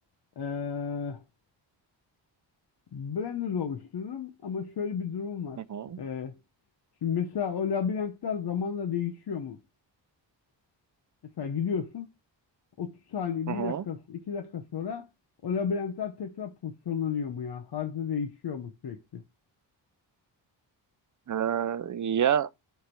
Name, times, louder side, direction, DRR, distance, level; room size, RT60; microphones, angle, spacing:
voice 1, 0.4-1.2 2.9-5.6 6.0-6.4 7.0-9.6 11.4-12.1 12.8-15.1 15.4-19.2, left 7 dB, 55° left, 0.9 m, -32 dB
voice 2, 5.6-6.0 13.5-13.8 21.3-22.5, right 9 dB, 40° right, 0.6 m, -28 dB
6.6 x 3.4 x 4.4 m
cardioid pair, 90°, 45 cm